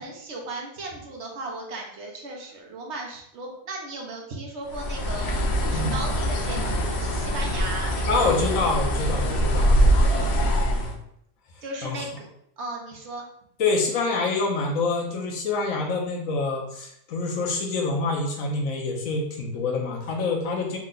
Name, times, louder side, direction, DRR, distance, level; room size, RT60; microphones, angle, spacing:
voice 1, 0.0-8.2 8.8-9.0 11.6-12.3 12.6-13.3, right 2 dB, 60° right, 0 dB, 1.0 m, -36 dB
Bird, 4.7-10.9, equal, 60° left, 0.8 m, -23 dB
voice 2, 8.1-11.0 11.8-12.0 13.6-20.8, left 3 dB, 80° left, 1 dB, 1.2 m, -27 dB
3.6 x 2.2 x 3.7 m, 0.72 s
omnidirectional pair, 1.4 m